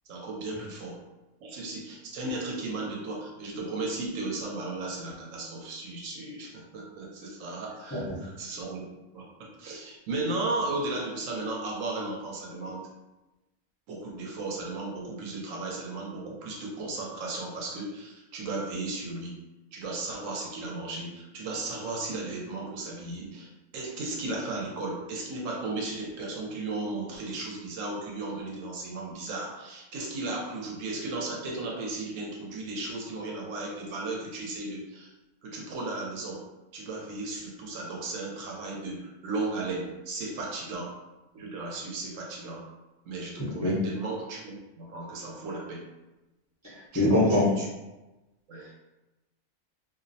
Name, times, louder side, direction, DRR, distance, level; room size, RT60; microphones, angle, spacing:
voice 1, 0.1-1.0 1.4-8.9 9.1-12.8 13.9-19.3 19.7-35.1 35.4-36.4 36.7-40.9 41.3-42.7 43.0-45.8 46.9-47.7 48.5-48.7, right 2 dB, 75° right, -2 dB, 0.9 m, -35 dB
voice 2, 43.4-43.7 46.9-47.5, left 1 dB, 20° left, -9 dB, 0.5 m, -23 dB
2.4 x 2.0 x 2.6 m, 1.0 s
omnidirectional pair, 1.4 m